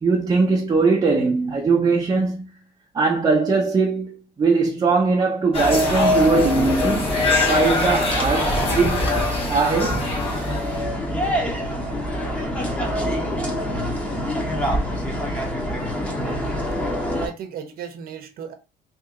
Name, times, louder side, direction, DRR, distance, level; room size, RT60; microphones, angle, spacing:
voice 1, 0.0-2.4 2.9-9.1 9.4-10.1, right 4 dB, 25° right, 0.8 m, -20 dB
sound 1, 5.5-10.8, left 2 dB, 35° left, 1.5 m, -25 dB
sound 2, 5.5-17.3, left 1 dB, 5° left, 1.0 m, -25 dB
voice 2, 16.0-16.6 17.2-18.5, right 7 dB, 65° right, 0.8 m, -35 dB
2.9 x 2.7 x 3.7 m
cardioid pair, 110°, 17 cm